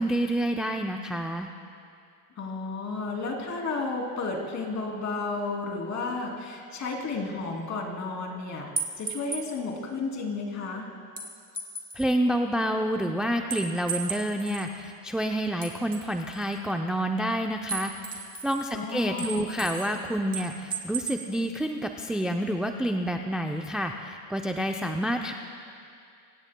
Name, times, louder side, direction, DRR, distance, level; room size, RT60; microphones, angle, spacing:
voice 1, 0.0-1.5 11.9-25.3, equal, ahead, 3 dB, 0.5 m, -28 dB
voice 2, 2.4-8.7 9.0-10.9 18.7-19.5, left 3 dB, 40° left, 0 dB, 3.0 m, -32 dB
sound 1, 8.8-9.5 11.2-12.1 13.5-14.7 15.6-16.5 17.7-18.7 19.2-20.0 20.3-21.3, right 5 dB, 20° right, 2.6 m, -35 dB
25.5 x 16.5 x 2.2 m, 2.4 s
supercardioid pair, 100°, 41 cm